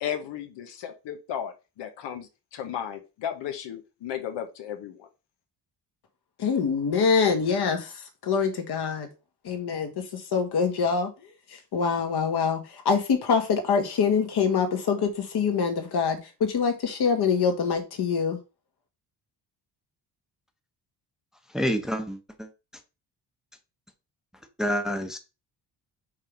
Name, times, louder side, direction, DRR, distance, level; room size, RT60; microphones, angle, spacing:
voice 1, 0.0-5.1, left 9 dB, 90° left, 1.2 m, -35 dB
voice 2, 6.4-9.1 9.4-18.4, left 6 dB, 65° left, 1.8 m, -25 dB
voice 3, 21.5-22.5 24.6-25.2, equal, ahead, 0.8 m, -28 dB
5.4 x 3.4 x 5.2 m
cardioid pair, 125°, 42 cm